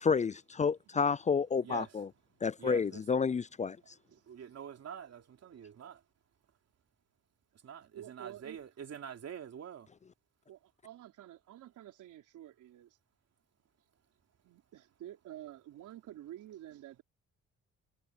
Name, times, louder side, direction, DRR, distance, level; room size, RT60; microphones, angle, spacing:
voice 1, 0.0-2.1 2.4-3.8, left 5 dB, 25° left, 0.4 m, -30 dB
voice 2, 1.6-2.0 2.6-3.0 4.1-6.0 7.6-9.9, right 8 dB, 55° right, 3.2 m, -46 dB
voice 3, 7.9-8.6 10.5-13.0 14.4-17.0, right 12 dB, 80° right, 4.5 m, -50 dB
cardioid pair, 90°, 30 cm